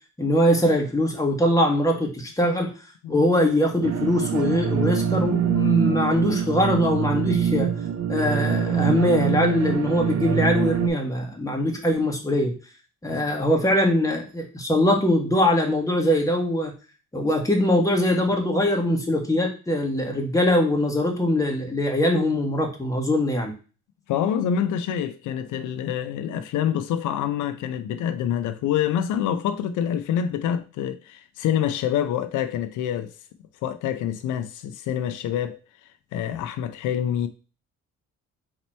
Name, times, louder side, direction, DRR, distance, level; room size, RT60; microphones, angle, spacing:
voice 1, 0.2-2.7 3.1-7.7 8.1-12.5 13.0-16.7 17.1-23.5, left 1 dB, 10° left, 1.5 m, -22 dB
sound 1, 3.8-10.9, right 8 dB, 55° right, 0.7 m, -24 dB
voice 2, 24.1-33.1 33.6-37.3, left 9 dB, 80° left, 0.5 m, -26 dB
4.1 x 3.0 x 4.3 m
cardioid pair, 90°, 30 cm